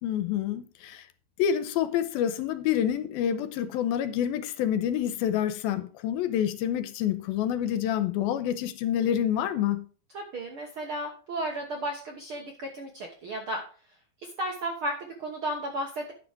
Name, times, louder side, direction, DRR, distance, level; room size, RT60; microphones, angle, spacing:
voice 1, 0.0-1.0 1.4-9.9, left 10 dB, 90° left, 2.6 m, -27 dB
voice 2, 10.1-13.6 14.2-16.1, right 1 dB, 65° right, 1.3 m, -34 dB
10.0 x 6.2 x 4.9 m
omnidirectional pair, 4.2 m